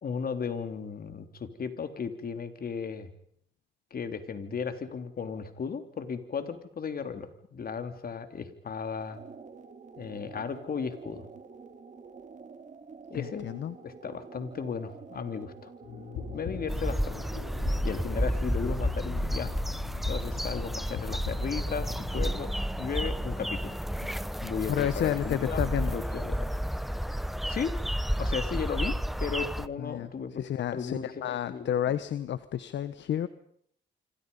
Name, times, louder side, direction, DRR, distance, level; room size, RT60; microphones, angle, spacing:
voice 1, 0.0-3.1 3.9-9.2 10.0-11.3 13.1-13.5 13.8-15.7 16.3-17.1 17.8-19.5 20.1-23.8 24.4-25.6 25.9-26.5 27.4-27.7 28.2-31.9, left 6 dB, 50° left, 9 dB, 3.2 m, -35 dB
sound 1, 9.0-18.6, right 5 dB, 40° right, 3.1 m, -48 dB
voice 2, 13.1-13.8 24.7-26.0 29.8-30.1 30.4-33.3, left 10 dB, 65° left, 14 dB, 1.1 m, -31 dB
sound 2, 15.8-22.3, left 6 dB, 85° left, 7.6 m, -40 dB
sound 3, 16.7-29.7, equal, ahead, 0.9 m, -31 dB
27.0 x 26.0 x 5.5 m, 0.67 s
cardioid pair, 90°, 20 cm